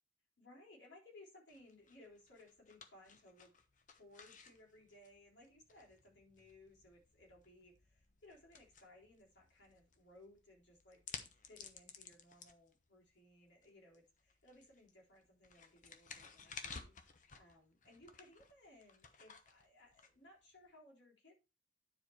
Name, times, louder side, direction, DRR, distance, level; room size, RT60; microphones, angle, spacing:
voice 1, 0.4-3.5 3.9-21.3, left 1 dB, 65° left, -3 dB, 3.8 m, -62 dB
sound 1, 1.5-20.7, left 5 dB, 40° left, 1.0 m, -56 dB
10.0 x 4.6 x 4.6 m, 0.30 s
head